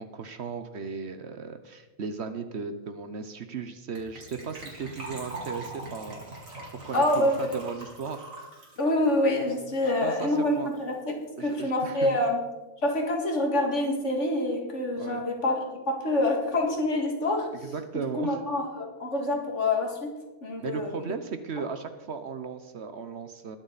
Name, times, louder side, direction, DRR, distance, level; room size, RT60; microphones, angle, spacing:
voice 1, 0.0-6.6 6.8-8.2 10.0-10.3 10.6-10.7 11.4-12.1 15.0-15.2 17.7-18.4 20.6-23.6, right 5 dB, 55° right, 9 dB, 1.1 m, -36 dB
Gurgling / Trickle dribble / Fill (with liquid), 4.0-10.2 10.4-10.5 10.7-10.9 11.2-11.3, right 2 dB, 75° right, 3.4 m, -42 dB
voice 2, 6.9-7.5 8.8-12.4 12.8-15.6 15.9-17.5 17.9-20.1 20.4-21.0, left 1 dB, 60° left, 1 dB, 2.4 m, -26 dB
21.5 x 7.8 x 4.1 m, 1.1 s
omnidirectional pair, 1.4 m